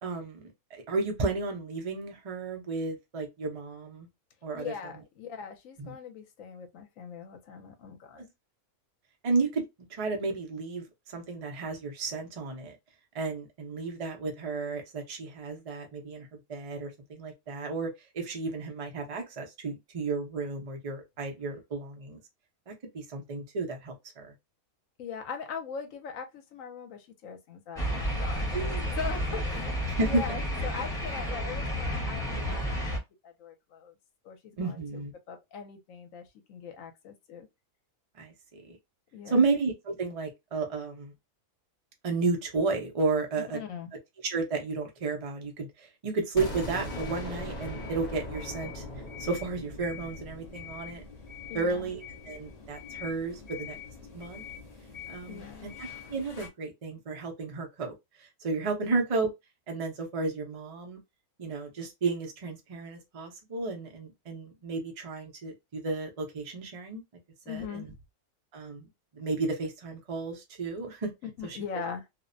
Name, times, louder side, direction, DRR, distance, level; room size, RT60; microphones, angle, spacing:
voice 1, 0.0-4.1 4.4-4.7 5.8-5.9 8.2-8.3 9.2-9.6 9.9-12.8 13.1-22.2 22.7-24.3 28.5-28.9 30.0-30.2 34.6-35.1 38.2-38.8 39.3-41.1 42.0-43.6 44.2-48.8 49.2-51.0 51.5-52.0 52.3-53.8 54.1-54.4 55.1-57.9 58.2-59.3 59.7-61.0 61.4-67.0 67.5-67.9 68.5-68.9 69.1-71.1 71.4-71.6, right 3 dB, 70° right, 0.3 m, -32 dB
voice 2, 4.5-8.3 25.0-28.6 29.0-29.7 29.9-32.8 33.2-33.9 34.2-35.0 35.3-37.5 39.1-39.5 43.5-43.9 51.5-51.9 55.3-55.7 67.5-67.9 71.2-72.0, left 6 dB, 65° left, 1.0 m, -40 dB
sound 1, 27.8-33.0, equal, 5° left, 0.6 m, -31 dB
sound 2, 46.4-52.1, left 1 dB, 40° left, 0.7 m, -40 dB
sound 3, 46.5-56.5, left 7 dB, 85° left, 0.3 m, -45 dB
2.6 x 2.1 x 2.5 m
omnidirectional pair, 1.6 m